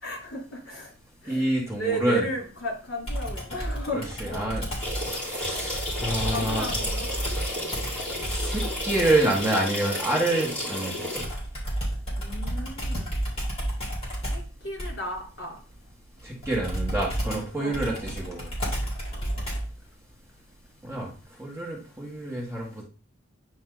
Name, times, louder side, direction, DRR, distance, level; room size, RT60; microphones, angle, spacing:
voice 1, 0.0-0.9 1.2-4.6 6.2-7.4 8.0-8.1 12.2-13.2 14.3-15.6 17.6-18.1 19.1-19.4, equal, 55° left, -1 dB, 3.4 m, -35 dB
voice 2, 1.3-2.3 3.9-4.6 5.3-6.7 8.3-11.2 16.2-18.5 20.8-21.1 21.4-22.8, right 1 dB, 10° right, -3 dB, 1.5 m, -27 dB
Computer keyboard, 3.1-9.3 11.2-19.8, right 1 dB, 25° left, 3.4 m, -32 dB
sound 1, 4.8-11.2, left 1 dB, 5° left, 3.4 m, -32 dB
9.6 x 4.1 x 3.8 m, 0.37 s
head